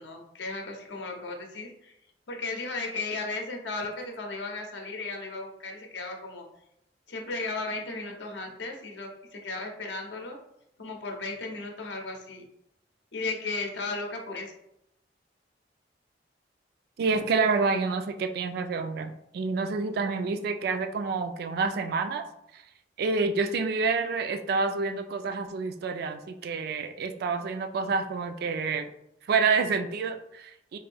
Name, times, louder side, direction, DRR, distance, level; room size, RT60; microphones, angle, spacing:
voice 1, 0.0-1.9 2.3-6.4 7.1-10.4 10.8-12.4 13.1-14.5, left 3 dB, 80° left, 2 dB, 0.6 m, -35 dB
voice 2, 17.0-22.3 22.5-22.6 23.0-28.9 29.3-30.8, right 4 dB, 60° right, 8 dB, 0.3 m, -28 dB
3.5 x 2.5 x 3.4 m, 0.79 s
head